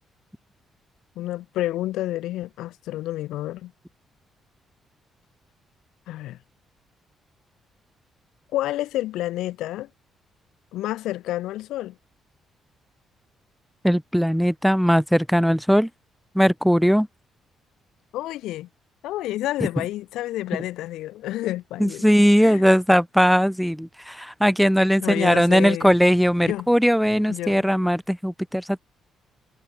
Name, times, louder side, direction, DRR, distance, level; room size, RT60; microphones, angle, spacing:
voice 1, 1.2-3.7 6.1-6.4 8.5-9.9 10.7-11.9 18.1-18.7 19.0-22.1 22.4-22.6 25.0-25.9 26.4-26.7 27.3-27.6, left 15 dB, 90° left, 0.7 m, -29 dB
voice 2, 13.8-15.9 16.4-17.1 21.8-28.8, equal, ahead, 0.4 m, -19 dB
cardioid pair, 90°, 0 cm